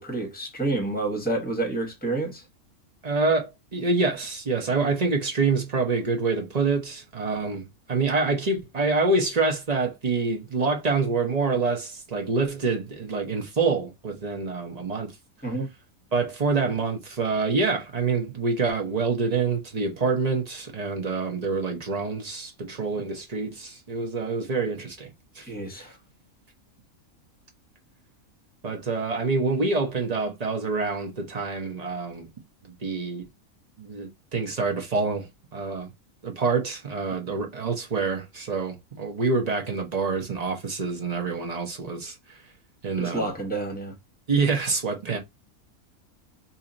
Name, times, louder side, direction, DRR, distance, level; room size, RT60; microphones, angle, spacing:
voice 1, 0.0-2.4 15.4-15.7 25.5-25.9 43.0-43.9, right 2 dB, 5° left, 1.2 m, -29 dB
voice 2, 3.0-15.1 16.1-25.5 25.8-25.9 28.6-32.3 32.8-33.2 33.8-35.9 36.2-42.4 42.8-43.3 44.3-45.2, right 4 dB, 35° right, 0.7 m, -26 dB
2.9 x 2.7 x 3.8 m
omnidirectional pair, 1.5 m